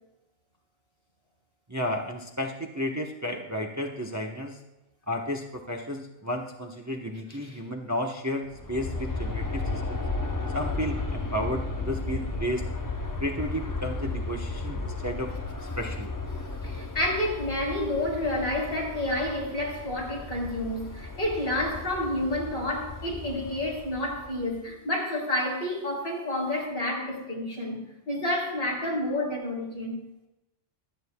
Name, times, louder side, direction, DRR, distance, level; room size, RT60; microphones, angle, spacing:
voice 1, 1.7-4.6 5.1-10.0 10.5-12.6 13.2-15.3 15.8-16.1, equal, 15° right, 1.0 m, -32 dB
Aircraft, 8.5-24.5, left 3 dB, 20° left, 0.7 m, -34 dB
voice 2, 16.6-29.9, left 1 dB, 60° left, 4.3 m, -29 dB
24.0 x 9.2 x 2.3 m
omnidirectional pair, 1.2 m